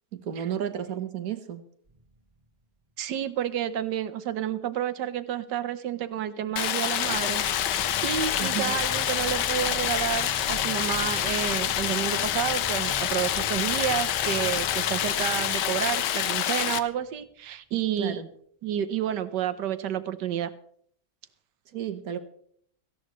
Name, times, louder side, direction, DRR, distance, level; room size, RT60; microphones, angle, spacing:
voice 1, 0.1-1.6 8.4-8.8 18.0-18.3 21.7-22.2, right 9 dB, 60° right, 1.5 m, -32 dB
sound 1, 1.9-2.4 6.8-17.0, right 2 dB, 20° right, 2.9 m, -43 dB
voice 2, 3.0-7.4 8.0-18.2 18.6-20.5, right 10 dB, 85° right, 1.5 m, -30 dB
Stream, 6.6-16.8, left 11 dB, 85° left, 1.4 m, -27 dB
17.5 x 15.0 x 3.1 m
omnidirectional pair, 1.8 m